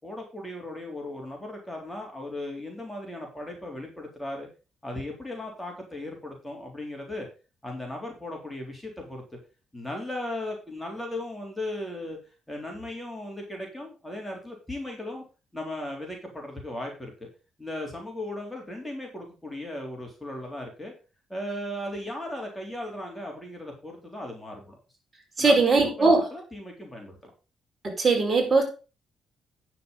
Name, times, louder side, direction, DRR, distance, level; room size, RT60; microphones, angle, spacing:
voice 1, 0.0-4.5 4.8-7.3 7.6-9.4 9.7-12.2 12.5-15.2 15.5-17.3 17.6-20.9 21.3-24.8 25.4-27.3, left 1 dB, 10° left, 1 dB, 3.6 m, -37 dB
voice 2, 25.4-26.3 27.8-28.6, right 3 dB, 35° right, 1 dB, 4.7 m, -20 dB
9.7 x 6.9 x 5.3 m, 0.33 s
cardioid pair, 90°, 0 cm